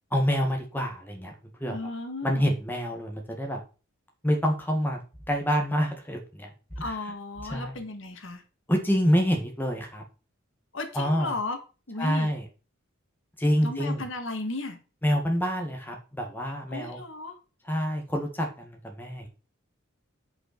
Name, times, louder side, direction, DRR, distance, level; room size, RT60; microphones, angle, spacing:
voice 1, 0.1-1.3 1.6-1.9 2.2-3.6 4.2-5.0 5.3-6.5 7.5-7.8 8.7-10.0 10.9-11.3 12.0-12.4 13.4-14.0 15.0-17.0 17.7-19.3, equal, 10° left, 2 dB, 1.9 m, -27 dB
voice 2, 1.7-2.5 6.8-8.4 10.7-11.6 11.9-12.3 13.6-14.8 16.7-17.3, left 2 dB, 70° left, 6 dB, 1.7 m, -35 dB
8.0 x 5.7 x 6.0 m, 0.33 s
head